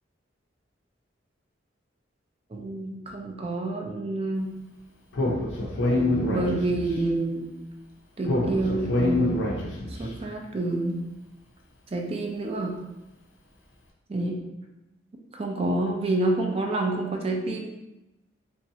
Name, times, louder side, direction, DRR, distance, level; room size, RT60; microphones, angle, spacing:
voice 1, 2.5-4.5 6.2-7.5 8.2-9.4 9.9-11.0 11.9-12.7 14.1-14.4 15.3-17.7, right 2 dB, 30° right, 1 dB, 0.4 m, -28 dB
Speech, 5.1-7.0 8.2-10.0, left 1 dB, 75° left, 0.6 m, -25 dB
3.0 x 2.6 x 2.7 m, 0.96 s
head